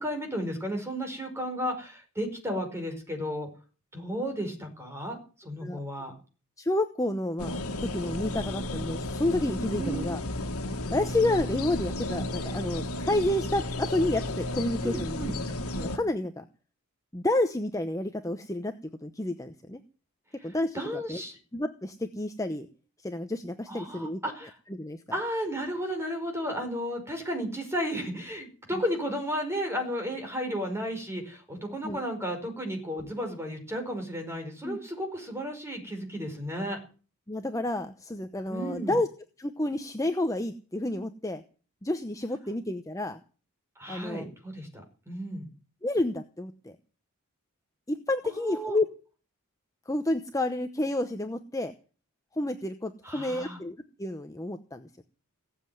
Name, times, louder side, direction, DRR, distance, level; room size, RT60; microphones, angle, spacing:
voice 1, 0.0-3.5 3.9-5.2 5.4-6.1 9.8-10.0 14.8-15.3 20.4-20.5 20.7-21.4 23.7-24.5 25.1-36.8 38.5-39.0 43.8-45.5 48.2-48.8 53.0-53.6, equal, 10° right, 4 dB, 5.0 m, -33 dB
voice 2, 6.6-10.2 10.9-15.2 15.8-16.5 17.1-18.7 19.0-19.8 20.4-21.2 21.5-22.7 23.0-24.2 24.7-25.0 31.8-32.0 34.6-34.8 37.3-39.1 39.4-41.4 41.8-43.2 43.9-44.2 45.8-46.8 47.9-48.8 49.9-51.7 52.3-55.0, left 1 dB, 15° left, 7 dB, 0.9 m, -30 dB
sound 1, 7.4-16.0, left 1 dB, 85° left, 1.7 m, -33 dB
18.5 x 7.7 x 9.3 m, 0.36 s
head